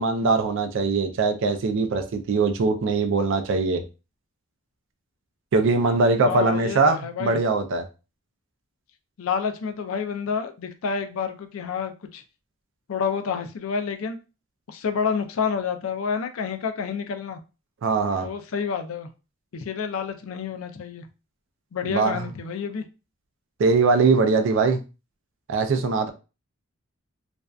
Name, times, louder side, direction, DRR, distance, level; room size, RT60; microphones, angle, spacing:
voice 1, 0.0-3.8 5.5-7.8 17.8-18.3 21.9-22.3 23.6-24.8 25.5-26.1, right 4 dB, 65° right, 0.4 m, -21 dB
voice 2, 6.3-7.4 9.2-12.2 12.9-14.2 14.7-17.4 18.2-19.1 19.5-21.0 21.7-22.8, left 6 dB, 75° left, 0.4 m, -29 dB
2.5 x 2.1 x 2.3 m
head